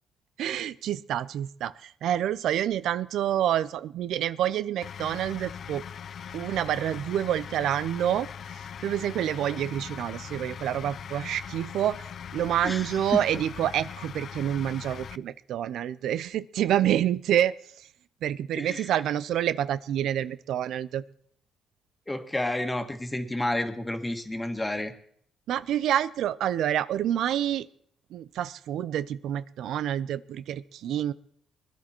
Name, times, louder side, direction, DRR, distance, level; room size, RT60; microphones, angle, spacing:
voice 1, 0.4-5.8 6.3-8.3 8.8-12.0 12.3-17.6 18.2-21.0 25.5-27.7 28.1-31.1, right 11 dB, 80° right, 16 dB, 0.5 m, -28 dB
sound 1, 4.8-15.2, left 8 dB, 60° left, 0.5 m, -40 dB
voice 2, 12.6-13.2 18.6-18.9 22.1-24.9, left 1 dB, 15° left, 7 dB, 1.8 m, -30 dB
21.0 x 11.0 x 4.4 m, 0.64 s
cardioid pair, 90°, 0 cm